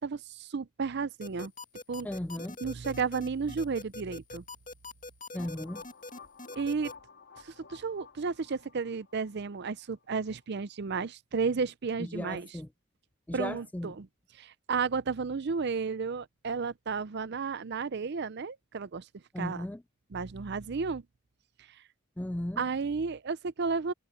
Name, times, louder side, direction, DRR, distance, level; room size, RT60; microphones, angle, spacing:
voice 1, 0.0-1.5 1.9-2.1 2.6-4.4 6.6-6.9 7.4-12.5 13.3-14.1 14.4-19.0 19.4-19.7 20.1-21.0 22.6-23.9, right 5 dB, 50° right, 0.5 m, -33 dB
sound 1, 1.2-6.9, left 2 dB, 35° left, 2.3 m, -43 dB
voice 2, 2.0-2.6 5.3-5.8 12.1-12.7 13.3-13.9 19.3-19.8 22.2-22.6, left 1 dB, 5° left, 0.3 m, -36 dB
sound 2, 5.4-10.1, left 5 dB, 55° left, 3.4 m, -53 dB
head